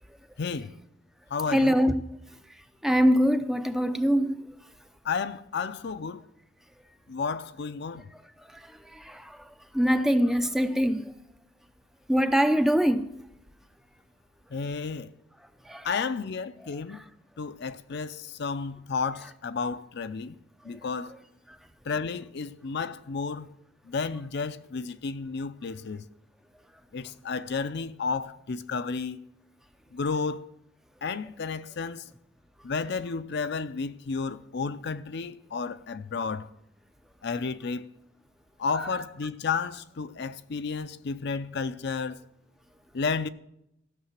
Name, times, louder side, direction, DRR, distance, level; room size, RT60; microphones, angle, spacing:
voice 1, 0.4-0.7 1.3-1.8 5.0-6.2 7.1-8.0 14.5-15.1 15.8-17.0 17.4-20.4 20.6-21.1 21.9-23.5 23.8-26.0 26.9-29.2 29.9-30.5 31.0-32.1 32.6-36.5 37.2-37.9 38.6-42.2 42.9-43.3, left 5 dB, 55° left, 0.5 m, -32 dB
voice 2, 1.5-2.0 2.8-4.3 8.9-9.4 9.7-11.1 12.1-13.1 15.7-15.9, equal, ahead, 0.5 m, -23 dB
14.5 x 6.7 x 7.3 m
head